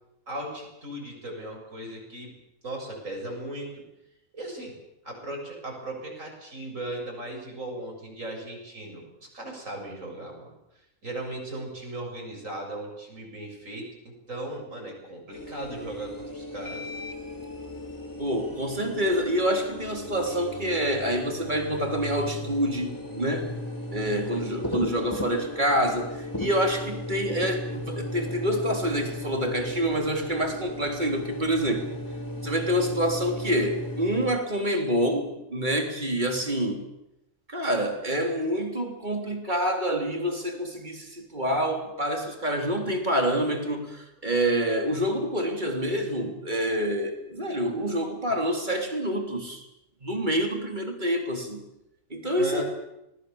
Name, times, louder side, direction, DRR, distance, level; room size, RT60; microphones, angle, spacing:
voice 1, 0.3-2.3 2.6-3.8 4.3-4.8 5.0-9.0 9.3-10.5 11.0-16.9 24.0-24.7 52.4-52.6, right 1 dB, 75° right, 1 dB, 7.7 m, -37 dB
sound 1, 15.3-34.4, left 1 dB, 15° left, 2.7 m, -36 dB
voice 2, 18.2-23.5 23.9-31.9 32.4-36.8 37.5-49.6 50.0-51.6 52.1-52.6, equal, 35° right, 3 dB, 3.7 m, -27 dB
26.0 x 20.0 x 7.2 m, 0.88 s
omnidirectional pair, 1.4 m